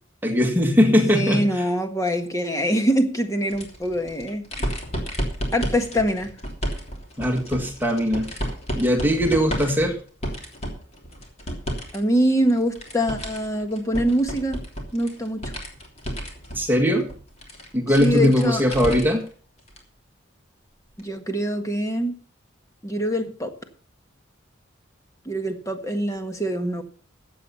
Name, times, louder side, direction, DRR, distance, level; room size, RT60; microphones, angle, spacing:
voice 1, 0.2-1.5 7.2-8.3 8.8-10.0 16.6-17.1 17.7-19.2, equal, 10° right, 2 dB, 1.8 m, -20 dB
voice 2, 1.1-4.4 5.5-6.3 11.9-14.6 14.9-15.5 17.9-18.6 21.0-22.2 22.8-23.5 25.3-26.8, equal, 15° left, 6 dB, 1.6 m, -24 dB
sound 1, 3.5-12.0 12.3-19.3 19.7-19.8 21.0-21.1, equal, 30° left, 3.2 m, -32 dB
15.0 x 8.7 x 5.6 m, 0.43 s
head